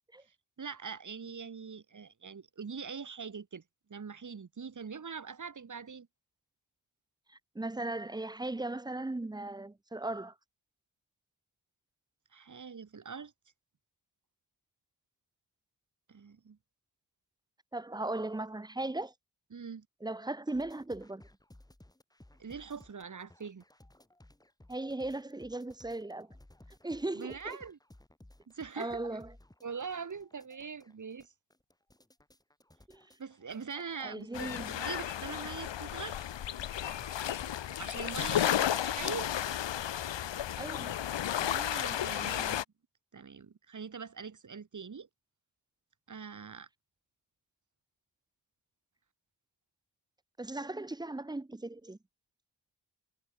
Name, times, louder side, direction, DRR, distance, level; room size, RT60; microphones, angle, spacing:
voice 1, 0.6-3.6 3.9-6.1 12.3-13.3 16.1-16.6 19.5-19.9 22.4-23.6 27.1-27.8 28.5-29.2 29.6-31.3 33.2-34.5 34.8-36.2 37.8-39.3 41.4-42.6 43.1-45.1 46.1-46.7, right 6 dB, 45° right, 4.0 m, -43 dB
voice 2, 7.5-10.3 17.7-19.1 20.0-21.2 24.7-26.3 26.8-27.6 28.8-29.3 32.9-33.0 34.0-34.9 40.6-41.0 50.4-52.0, right 2 dB, 10° right, 0.6 m, -37 dB
sound 1, 20.5-38.4, left 1 dB, 10° left, 5.5 m, -59 dB
sound 2, 34.3-42.6, left 10 dB, 80° left, 1.2 m, -33 dB
wide cardioid pair, 155°, 43 cm